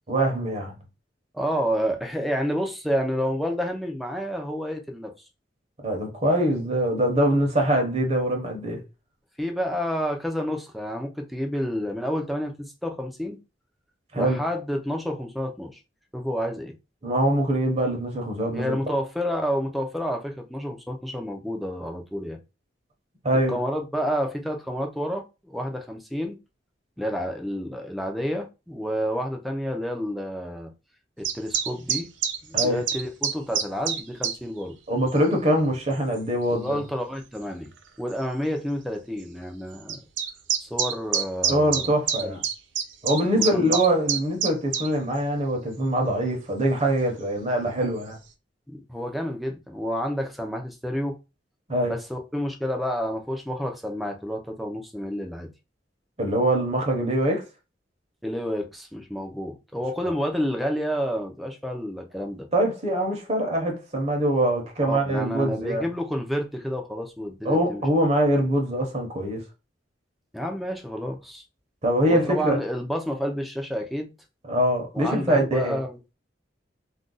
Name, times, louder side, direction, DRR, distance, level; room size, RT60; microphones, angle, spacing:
voice 1, 0.1-0.7 5.8-8.8 14.1-14.4 17.0-18.8 23.2-23.6 32.5-32.8 34.9-36.8 41.5-42.4 43.0-48.2 51.7-51.9 56.2-57.4 62.5-65.9 67.4-69.4 71.8-72.6 74.5-75.8, right 1 dB, 35° right, 0.8 m, -23 dB
voice 2, 1.3-5.1 9.4-13.4 14.1-15.8 16.1-16.7 18.5-22.4 23.5-26.4 27.0-30.7 31.2-32.1 32.4-34.7 36.5-37.7 38.0-40.0 40.6-41.9 42.2-42.4 43.4-43.8 48.7-51.2 51.9-55.5 58.2-62.5 64.8-67.8 70.3-71.4 72.0-74.1 74.9-76.0, equal, ahead, 0.5 m, -29 dB
sound 1, 31.2-34.4 35.1-35.2 36.1-36.2 37.4-37.5 37.8-37.9 38.1-38.2 39.9-44.9, right 8 dB, 90° right, 0.5 m, -26 dB
2.5 x 2.2 x 3.8 m
head